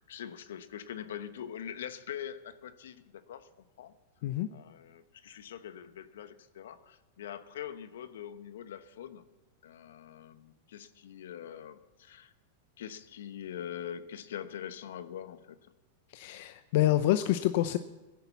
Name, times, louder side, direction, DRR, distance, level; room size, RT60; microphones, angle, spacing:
voice 1, 0.0-3.5 3.8-3.9 4.5-9.2 9.6-12.3 12.8-15.6, left 9 dB, 80° left, 1.0 m, -43 dB
voice 2, 16.1-17.8, left 14 dB, 60° left, 0.7 m, -27 dB
18.0 x 10.5 x 7.1 m
hypercardioid pair, 120°, 0 cm